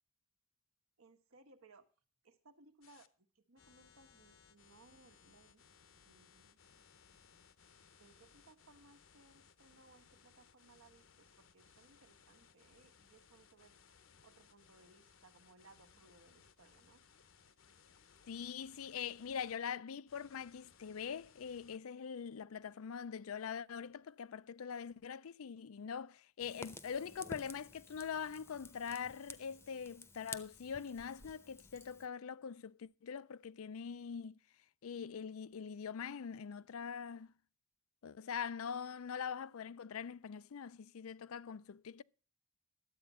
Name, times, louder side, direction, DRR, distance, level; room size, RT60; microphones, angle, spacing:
voice 1, 1.0-1.8 2.2-5.6 5.9-7.5 8.0-13.8 14.2-17.0, right 3 dB, 85° right, 1.3 m, -65 dB
sound 1, 2.8-3.1 3.6-19.6 20.1-21.8, left 6 dB, 70° left, 0.9 m, -65 dB
voice 2, 18.3-34.4 34.8-37.3 38.0-42.0, left 7 dB, 85° left, 0.5 m, -43 dB
Fire, 26.4-32.1, left 3 dB, 10° left, 0.7 m, -52 dB
11.5 x 8.3 x 5.5 m
head